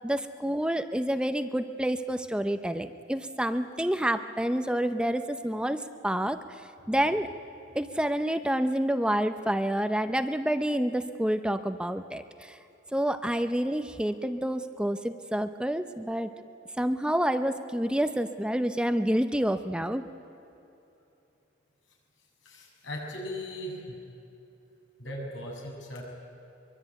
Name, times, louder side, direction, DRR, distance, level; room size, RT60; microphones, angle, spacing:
voice 1, 0.0-6.4 6.9-7.3 7.7-12.6 12.9-16.3 16.8-20.1, right 1 dB, 5° right, 9 dB, 0.7 m, -28 dB
voice 2, 22.2-24.0 25.0-26.0, left 1 dB, 85° left, -1 dB, 7.5 m, -38 dB
23.5 x 23.0 x 9.2 m, 2.8 s
head